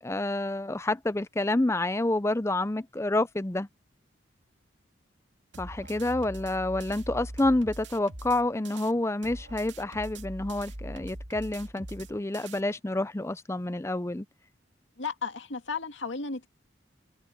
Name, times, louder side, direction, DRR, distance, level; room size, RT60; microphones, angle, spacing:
voice 1, 0.0-3.7 5.6-14.3, left 2 dB, 15° left, 0.5 m, -28 dB
sound 1, 5.5-8.9 9.2-12.6, right 1 dB, 70° right, 2.4 m, -42 dB
voice 2, 15.0-16.5, left 5 dB, 80° left, 2.0 m, -34 dB
head